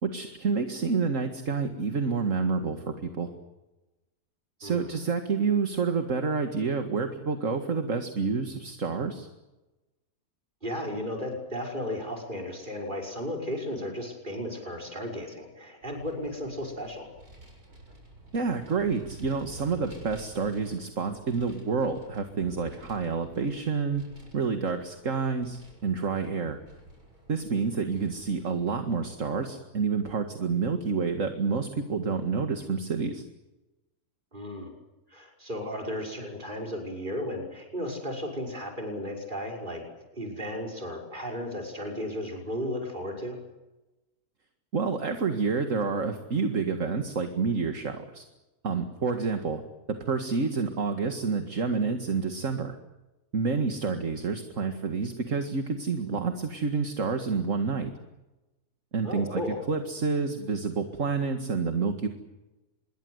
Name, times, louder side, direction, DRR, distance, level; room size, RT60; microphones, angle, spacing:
voice 1, 0.0-3.3 4.6-9.3 18.3-24.0 24.3-26.6 27.3-33.2 44.7-48.2 48.6-49.6 50.1-52.8 53.3-57.9 58.9-59.4 59.7-62.1, right 5 dB, 55° right, 6 dB, 2.3 m, -28 dB
voice 2, 4.6-4.9 10.6-17.1 34.3-34.7 35.1-39.8 40.1-43.4 59.0-59.6, left 1 dB, 30° right, 3 dB, 6.2 m, -34 dB
Vehicle, 15.8-29.0, right 1 dB, 75° right, 7.5 m, -51 dB
26.5 x 22.0 x 8.1 m, 1.0 s
omnidirectional pair, 1.6 m